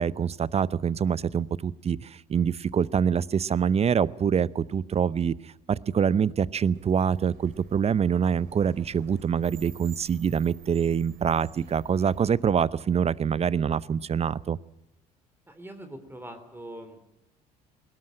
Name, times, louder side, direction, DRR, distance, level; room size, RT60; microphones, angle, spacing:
voice 1, 0.0-5.3 5.7-14.6, right 7 dB, 30° right, 21 dB, 0.8 m, -25 dB
sound 1, 6.7-12.4, right 7 dB, 65° right, 3.2 m, -49 dB
voice 2, 15.5-17.0, right 1 dB, 10° right, 8 dB, 3.3 m, -42 dB
20.5 x 18.5 x 8.9 m, 0.85 s
hypercardioid pair, 60°, 20 cm